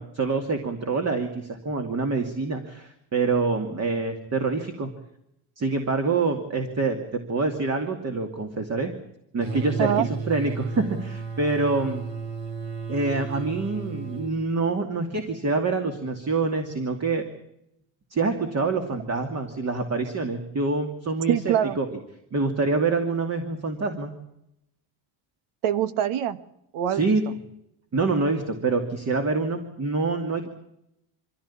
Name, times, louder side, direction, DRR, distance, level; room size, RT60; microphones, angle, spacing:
voice 1, 0.0-4.9 5.6-9.0 9.3-12.0 12.9-17.2 18.1-22.0 22.3-24.1 26.9-27.2 27.9-30.5, right 3 dB, 30° right, 5 dB, 2.6 m, -26 dB
sound 1, 9.4-14.3, right 5 dB, 65° right, 7.2 m, -33 dB
voice 2, 21.3-21.8 25.6-26.4 26.7-27.2, right 10 dB, 85° right, 14 dB, 1.6 m, -24 dB
24.5 x 16.0 x 8.6 m, 0.81 s
cardioid pair, 140°, 49 cm